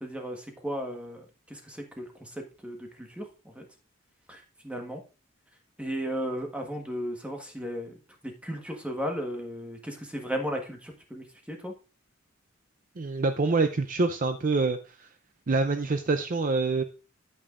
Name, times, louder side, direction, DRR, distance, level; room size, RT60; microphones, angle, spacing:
voice 1, 0.0-3.6 4.3-5.0 5.8-8.0 8.2-11.7, equal, 5° right, 2 dB, 1.4 m, -35 dB
voice 2, 13.0-14.8 15.5-16.8, right 3 dB, 40° right, 8 dB, 0.5 m, -25 dB
8.8 x 8.8 x 2.5 m, 0.32 s
head